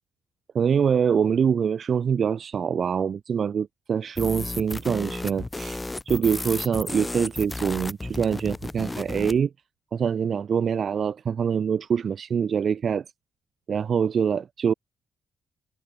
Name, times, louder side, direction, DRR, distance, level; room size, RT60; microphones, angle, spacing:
voice 1, 0.5-9.5 9.9-13.0 13.7-14.7, right 7 dB, 50° right, 1.2 m, -24 dB
sound 1, 4.1-9.4, left 2 dB, 15° left, 2.8 m, -33 dB
cardioid pair, 90°, 0 cm